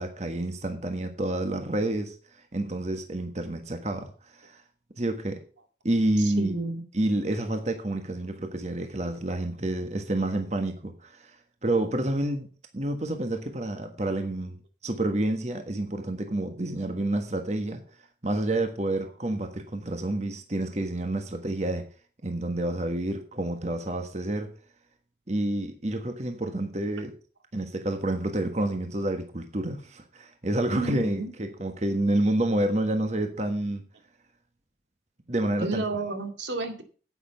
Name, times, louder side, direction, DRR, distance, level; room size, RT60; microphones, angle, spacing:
voice 1, 0.0-4.6 5.0-5.4 5.8-6.5 6.9-11.3 11.6-12.5 12.7-14.6 14.8-17.8 18.2-21.8 22.2-24.5 25.3-27.1 27.5-33.8 35.3-35.8, right 1 dB, 40° right, 1.4 m, -29 dB
voice 2, 6.4-6.8 30.7-31.3 35.6-36.8, right 2 dB, 85° right, 2.2 m, -31 dB
9.9 x 8.7 x 5.8 m
head